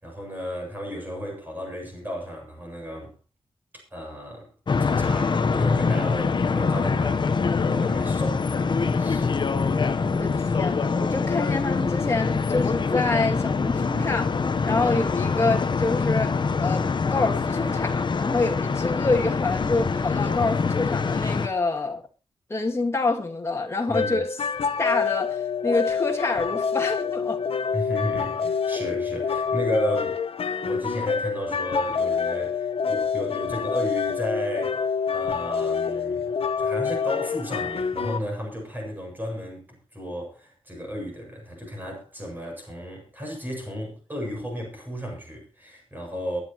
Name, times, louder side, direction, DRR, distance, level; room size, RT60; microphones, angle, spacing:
voice 1, 0.0-3.1 3.9-4.5 4.8-9.4 10.0-10.2 23.9-24.2 27.7-30.2 30.6-46.4, equal, 20° right, 7.9 m, -33 dB
sound 1, 4.7-21.5, left 5 dB, 50° left, 0.9 m, -24 dB
voice 2, 10.0-14.4 14.7-22.0 22.5-24.3 24.8-27.4, left 3 dB, 25° left, 2.3 m, -27 dB
sound 2, 23.9-38.2, left 6 dB, 70° left, 1.1 m, -27 dB
23.0 x 11.0 x 3.0 m
wide cardioid pair, 155°, 10 cm